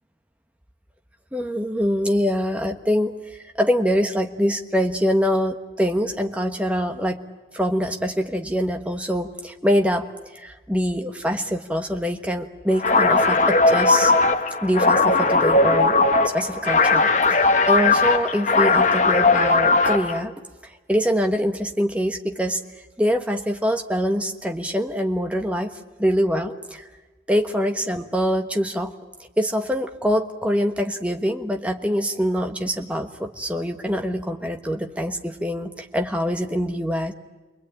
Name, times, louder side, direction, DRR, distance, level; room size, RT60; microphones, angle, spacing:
voice 1, 1.3-7.2 7.5-10.1 10.3-14.1 14.6-16.0 16.3-20.3 20.9-22.6 23.0-25.7 26.0-26.9 27.3-28.9 29.4-37.1, equal, 5° right, 4 dB, 1.3 m, -24 dB
sound 1, 12.8-20.2, left 3 dB, 45° left, 1.2 m, -18 dB
29.0 x 22.0 x 8.8 m, 1.3 s
head